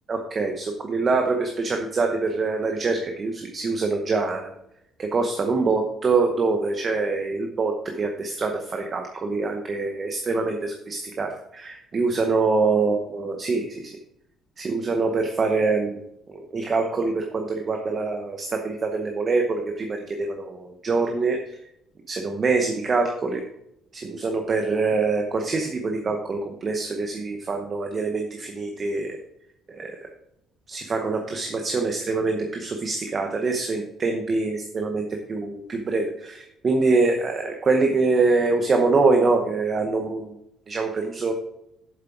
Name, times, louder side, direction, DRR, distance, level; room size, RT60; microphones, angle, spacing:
voice 1, 0.1-4.5 5.0-14.0 14.6-21.4 22.1-23.4 23.9-29.2 29.7-30.0 30.7-40.3 40.7-41.3, right 3 dB, 25° right, 3 dB, 0.8 m, -24 dB
7.7 x 7.4 x 4.6 m, 0.80 s
cardioid pair, 180°, 0 cm